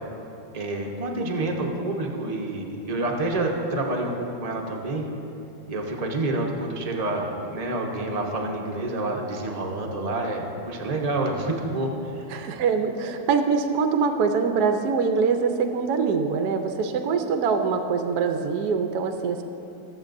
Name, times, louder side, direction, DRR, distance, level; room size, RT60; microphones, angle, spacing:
voice 1, 0.5-5.0 5.7-12.3, right 2 dB, 40° right, 0 dB, 0.5 m, -28 dB
voice 2, 12.3-19.4, right 5 dB, 70° right, 6 dB, 1.0 m, -24 dB
20.5 x 7.3 x 2.6 m, 2.8 s
omnidirectional pair, 2.1 m